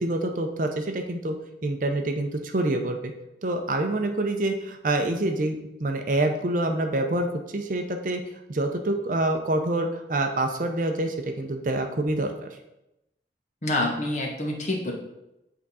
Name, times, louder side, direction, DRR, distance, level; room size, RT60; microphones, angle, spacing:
voice 1, 0.0-1.3 1.6-3.1 3.4-7.3 7.5-8.2 8.5-12.5, right 2 dB, 45° right, 5 dB, 0.6 m, -26 dB
voice 2, 13.6-14.9, left 1 dB, 40° left, 0 dB, 1.1 m, -27 dB
8.2 x 3.7 x 4.1 m, 0.90 s
head